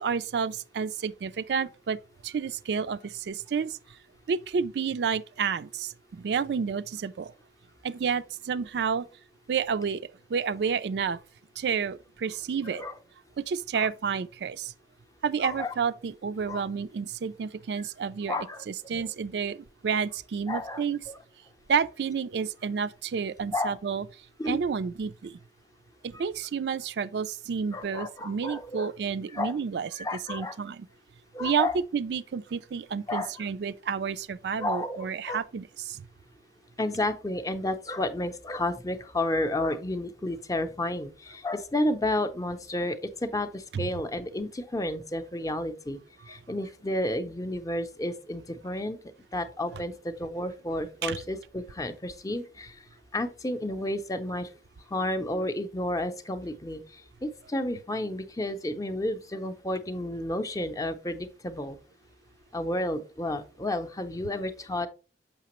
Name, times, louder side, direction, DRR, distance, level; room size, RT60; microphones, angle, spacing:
voice 1, 0.0-3.8 4.3-7.3 7.8-9.1 9.5-10.0 10.3-11.2 11.6-12.8 13.4-14.7 15.2-18.4 18.7-21.0 21.7-24.1 24.4-25.4 26.0-30.9 31.4-36.1 43.7-43.8 51.0-51.2, right 6 dB, 70° right, 0.4 m, -30 dB
voice 2, 15.4-15.7 16.5-16.6 18.3-19.1 20.5-21.2 23.5-23.7 24.4-24.6 26.1-26.2 27.7-28.9 29.3-29.5 30.0-30.6 31.3-31.7 33.1-33.4 34.6-35.4 36.8-46.0 46.3-49.0 49.3-52.8 53.1-54.5 54.9-61.8 62.5-64.9, left 1 dB, 20° left, 0.6 m, -31 dB
6.7 x 5.7 x 3.0 m
head